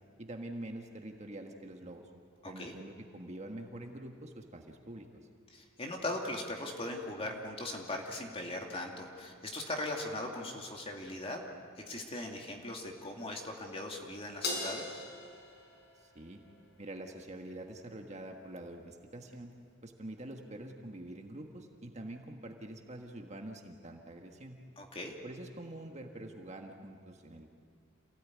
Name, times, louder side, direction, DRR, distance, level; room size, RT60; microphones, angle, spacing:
voice 1, 0.2-2.0 2.4-5.1 16.0-16.4 16.8-19.5 19.8-24.6 25.2-27.5, right 1 dB, 30° right, 3 dB, 1.6 m, -45 dB
voice 2, 5.5-11.4 11.8-15.0 24.8-25.2, left 1 dB, 25° left, 1 dB, 2.5 m, -39 dB
Crash cymbal, 14.4-17.0, left 2 dB, 50° left, 5.4 m, -40 dB
28.0 x 17.5 x 9.6 m, 2.3 s
head